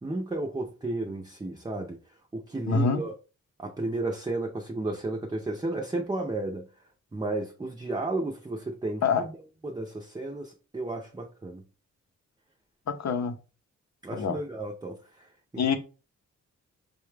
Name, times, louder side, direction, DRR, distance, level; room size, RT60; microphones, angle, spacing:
voice 1, 0.0-2.0 2.3-3.1 3.6-6.6 7.1-9.3 9.6-11.6 14.0-15.3 15.5-15.8, right 2 dB, 15° right, 0.5 m, -33 dB
voice 2, 2.7-3.0 9.0-9.2 12.9-13.4 14.1-14.4 15.6-15.8, left 5 dB, 65° left, 0.7 m, -25 dB
4.9 x 2.3 x 3.2 m
wide cardioid pair, 130°, 30 cm